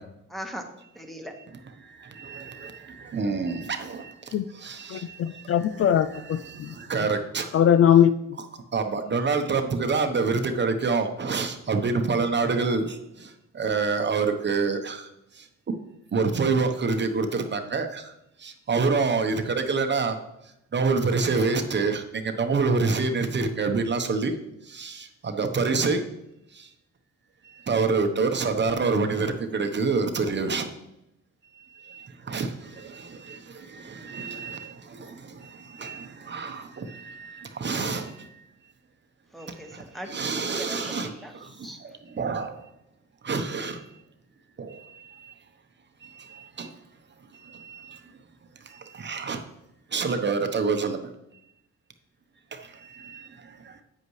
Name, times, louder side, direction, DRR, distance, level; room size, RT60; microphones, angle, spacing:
voice 1, 0.3-0.7 0.9-1.3 39.3-40.1 40.4-41.8, equal, ahead, 1.4 m, -39 dB
voice 2, 2.2-2.7 3.1-4.1 4.6-5.0 6.1-6.2 6.8-7.5 8.7-12.9 13.5-15.0 16.1-18.0 18.4-20.1 20.7-24.3 24.7-26.0 27.7-30.7 31.9-32.5 33.3-33.4 33.9-34.7 35.8-38.1 40.1-41.1 42.2-42.6 43.2-43.8 46.6-46.7 47.7-47.8 49.0-49.4 49.9-51.0 53.0-53.3, right 4 dB, 35° right, 1.0 m, -26 dB
voice 3, 4.9-6.7 7.5-8.1, left 9 dB, 50° left, 0.4 m, -20 dB
9.0 x 8.1 x 3.2 m
cardioid pair, 90°, 30 cm